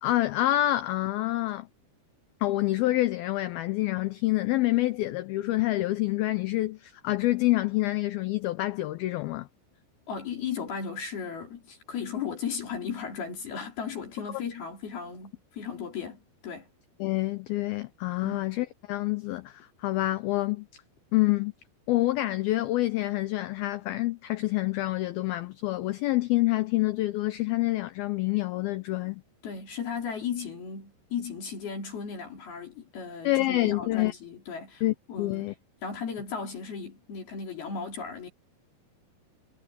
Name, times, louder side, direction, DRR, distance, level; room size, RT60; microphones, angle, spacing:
voice 1, 0.0-1.7 2.4-9.5 17.0-20.7 21.1-21.5 21.9-29.2 33.2-34.1 34.8-35.5, left 17 dB, 85° left, 2.1 m, -27 dB
voice 2, 10.1-16.7 18.2-18.4 29.4-34.8 35.1-35.5 35.8-38.3, left 6 dB, 55° left, 5.5 m, -36 dB
omnidirectional pair, 5.3 m